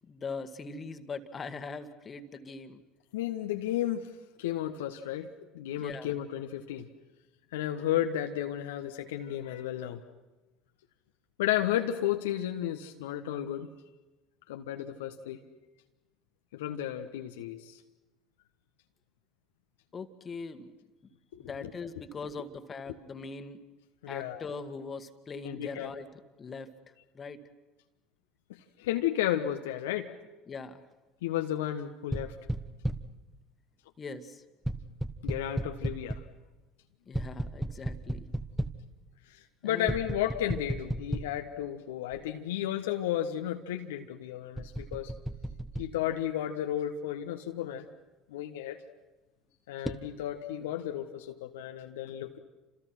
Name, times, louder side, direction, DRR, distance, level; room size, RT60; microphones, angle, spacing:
voice 1, 0.0-2.8 5.8-6.2 19.9-20.7 21.4-23.6 24.1-27.4 30.5-30.9 34.0-34.4 37.1-38.3 39.6-40.0 50.6-50.7, left 4 dB, 30° left, 9 dB, 2.0 m, -41 dB
voice 2, 3.1-4.1 4.4-5.3 5.5-6.9 7.5-10.0 11.4-13.7 14.5-15.4 16.5-17.8 21.3-21.7 24.0-24.5 25.4-25.9 28.8-30.1 31.2-32.4 35.2-36.2 39.3-45.1 45.8-47.8 48.3-48.8 49.7-52.4, left 11 dB, 70° left, 5 dB, 1.2 m, -33 dB
sound 1, 32.1-33.2 34.6-36.4 37.1-38.9 39.9-41.5 42.1-42.2 44.5-45.9 49.8-50.0, right 1 dB, 5° right, 1.5 m, -35 dB
29.5 x 27.5 x 6.1 m, 1.1 s
figure-of-eight pair, 65°, 0 cm